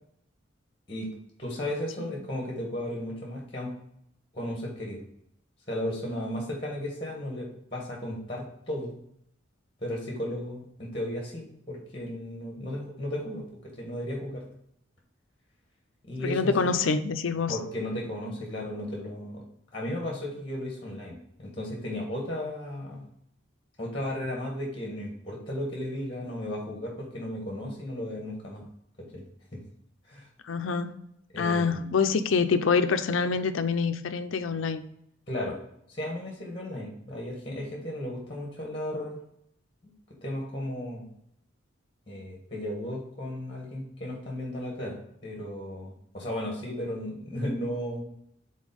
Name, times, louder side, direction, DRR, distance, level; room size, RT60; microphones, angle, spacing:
voice 1, 1.4-3.7 4.3-5.0 5.7-9.0 9.8-14.4 16.0-16.5 17.5-19.4 19.7-23.1 23.8-28.7 29.0-29.2 29.5-29.6 30.0-30.3 31.3-31.9 35.3-35.6 35.9-39.2 40.2-41.0 42.1-48.0, left 1 dB, 25° left, -2 dB, 1.4 m, -35 dB
voice 2, 16.2-17.6 30.4-31.0 31.4-34.9, left 5 dB, 75° left, 9 dB, 0.5 m, -26 dB
5.3 x 3.9 x 5.1 m, 0.74 s
head